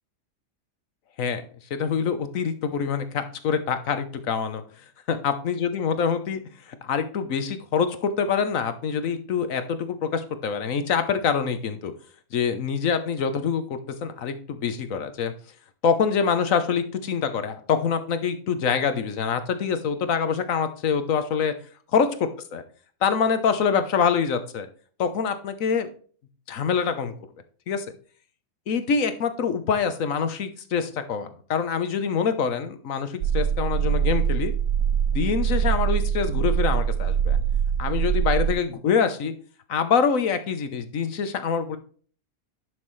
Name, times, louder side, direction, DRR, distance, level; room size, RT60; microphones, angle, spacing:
voice 1, 1.7-4.6 5.1-6.4 6.7-11.9 12.3-15.3 15.8-21.5 21.9-22.6 23.0-24.7 25.0-25.9 26.5-27.1 27.7-27.9 28.7-34.5 35.1-37.4 37.8-39.3 39.7-41.8, left 6 dB, 90° left, 9 dB, 1.4 m, -25 dB
sound 1, 33.2-38.5, right 8 dB, 70° right, 0.9 m, -23 dB
11.0 x 6.3 x 3.2 m, 0.43 s
omnidirectional pair, 1.3 m